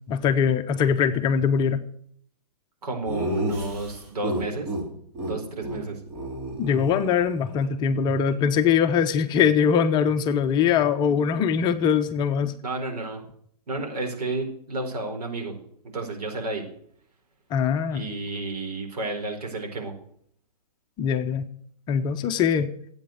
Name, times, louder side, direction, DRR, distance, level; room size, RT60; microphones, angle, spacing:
voice 1, 0.1-1.8 6.6-12.5 17.5-18.1 21.0-21.5 21.9-22.7, left 7 dB, 20° left, 9 dB, 0.7 m, -22 dB
voice 2, 2.8-4.7 5.2-6.0 12.6-13.2 13.7-15.6 15.9-16.6 17.9-19.9, right 2 dB, 75° right, 3 dB, 4.5 m, -31 dB
Laughter, 3.1-4.8 5.1-5.3 5.6-5.8 6.1-7.6, right 1 dB, 35° right, 5.6 m, -31 dB
13.5 x 8.7 x 7.8 m, 0.65 s
hypercardioid pair, 140°, 20 cm